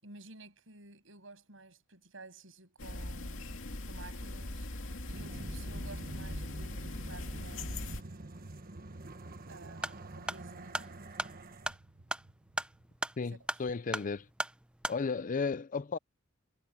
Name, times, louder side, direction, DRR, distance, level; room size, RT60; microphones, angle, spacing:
voice 1, 0.0-3.6 3.8-4.7 5.1-8.2 9.5-11.0, right 2 dB, 75° right, 7.3 m, -52 dB
sound 1, 2.8-8.0, left 1 dB, 75° left, 2.4 m, -40 dB
sound 2, 5.1-13.3, right 2 dB, 50° right, 1.4 m, -47 dB
sound 3, 9.7-15.0, right 1 dB, 5° right, 0.6 m, -39 dB
voice 2, 13.2-14.3 14.9-16.0, left 4 dB, 40° left, 0.5 m, -34 dB
head